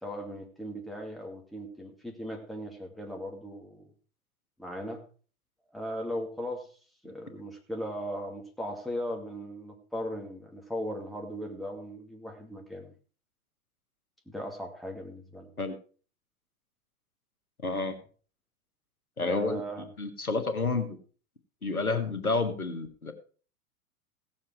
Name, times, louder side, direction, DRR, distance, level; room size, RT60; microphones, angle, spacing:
voice 1, 0.0-3.9 4.6-5.0 5.7-6.7 7.0-12.9 14.3-15.5 19.2-19.9, equal, ahead, 1 dB, 2.2 m, -38 dB
voice 2, 17.6-17.9 19.2-19.6 20.0-21.0 21.6-23.1, left 3 dB, 90° left, 8 dB, 1.6 m, -29 dB
16.0 x 7.3 x 4.6 m, 0.39 s
figure-of-eight pair, 95°, 42 cm